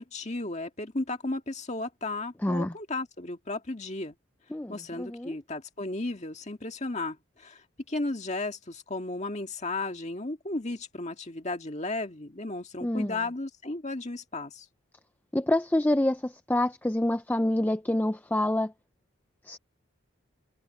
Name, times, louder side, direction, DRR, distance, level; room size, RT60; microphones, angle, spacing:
voice 1, 0.0-4.1 4.7-7.6 7.9-14.7, left 2 dB, 30° left, 1.9 m, -34 dB
voice 2, 2.4-2.7 4.5-5.3 12.8-13.1 15.3-18.7 19.5-19.6, left 1 dB, 10° left, 0.4 m, -27 dB
head